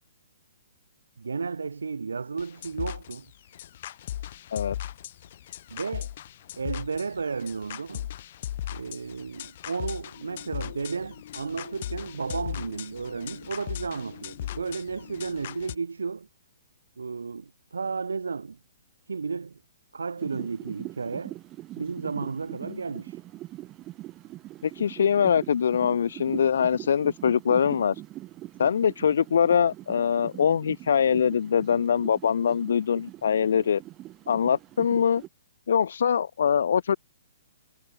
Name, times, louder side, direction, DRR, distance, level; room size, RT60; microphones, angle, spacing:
voice 1, 1.2-3.3 5.7-6.1 6.6-8.1 8.7-16.3 17.0-18.6 19.1-19.6 19.9-21.4 21.8-23.2, right 5 dB, 90° right, 1.1 m, -33 dB
sound 1, 2.4-15.7, left 12 dB, 55° left, 1.9 m, -38 dB
sound 2, 20.2-35.3, right 16 dB, 25° right, 1.1 m, -42 dB
voice 2, 24.6-28.0 28.6-33.8 34.3-35.2 35.7-37.0, left 7 dB, 70° left, 0.5 m, -23 dB
hypercardioid pair, 140°, 0 cm